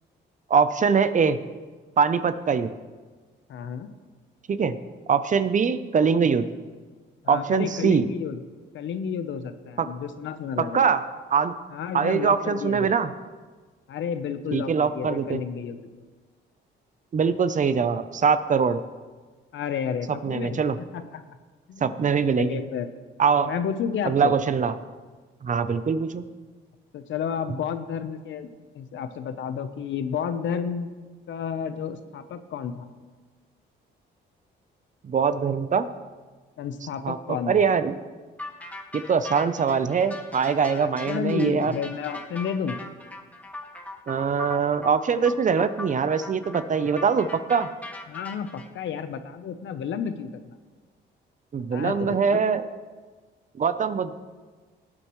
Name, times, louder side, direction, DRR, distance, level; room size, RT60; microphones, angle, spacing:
voice 1, 0.5-1.4 2.0-2.7 4.5-4.8 5.1-6.5 7.3-8.1 9.8-9.9 10.6-11.6 11.9-13.1 14.5-15.4 17.1-18.8 20.2-20.8 21.8-22.6 23.2-23.5 24.1-24.7 25.4-26.2 35.0-35.9 37.0-37.2 37.5-37.9 38.9-41.7 44.1-47.7 51.5-52.7 53.6-54.1, right 6 dB, 40° right, 12 dB, 0.7 m, -23 dB
voice 2, 3.5-3.9 7.2-8.4 8.7-10.9 11.7-13.0 13.9-16.0 19.5-21.2 21.7-22.9 23.5-24.4 26.9-30.9 31.3-32.9 36.6-37.6 40.7-42.8 48.1-50.5 51.7-52.6, left 7 dB, 70° left, 10 dB, 0.9 m, -31 dB
sound 1, 38.4-48.7, left 2 dB, 5° left, 1.4 m, -39 dB
18.5 x 8.8 x 3.2 m, 1.4 s
cardioid pair, 90°, 20 cm